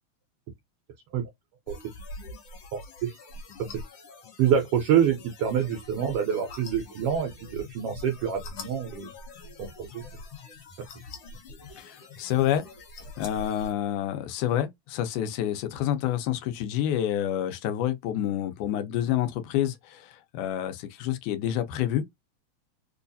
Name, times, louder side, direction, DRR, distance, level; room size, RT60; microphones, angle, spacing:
sound 1, 1.7-13.7, left 2 dB, 60° left, 1.5 m, -44 dB
voice 1, 2.7-3.1 4.4-9.1 9.6-10.0, right 8 dB, 80° right, 1.3 m, -26 dB
voice 2, 11.8-12.7 13.2-22.0, left 11 dB, 85° left, 2.2 m, -28 dB
4.8 x 2.3 x 2.6 m
omnidirectional pair, 3.4 m